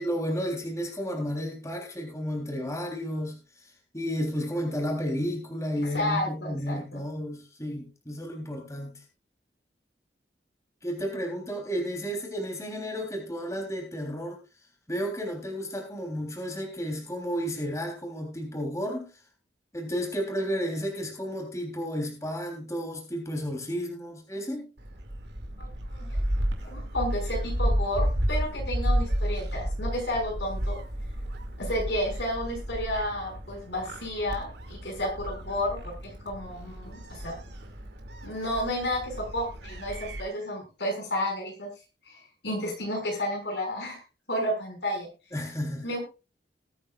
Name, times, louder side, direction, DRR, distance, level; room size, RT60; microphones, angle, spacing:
voice 1, 0.0-9.0 10.8-14.4 14.9-19.1 19.7-24.7 45.3-45.9, equal, 20° left, 1 dB, 3.4 m, -32 dB
voice 2, 5.8-7.0 25.6-26.2 26.6-30.8 31.6-37.4 38.2-41.7 42.1-44.0 44.3-45.1 45.8-46.0, left 1 dB, 80° left, 2 dB, 5.7 m, -32 dB
Gull seagull, 24.8-40.2, equal, 75° right, 2.4 m, -32 dB
21.0 x 8.6 x 2.4 m, 0.31 s
head